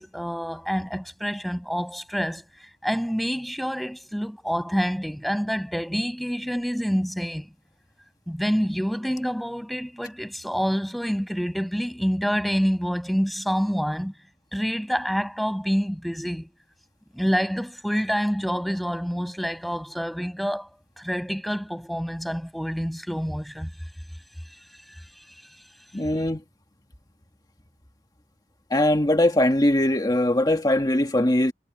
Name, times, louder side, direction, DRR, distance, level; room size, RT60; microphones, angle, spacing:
voice 1, 0.0-7.5 8.3-14.1 14.5-16.5 17.1-20.7 21.0-23.7, equal, ahead, 6.6 m, -27 dB
voice 2, 25.9-26.4 28.7-31.5, left 1 dB, 25° left, 1.8 m, -21 dB
head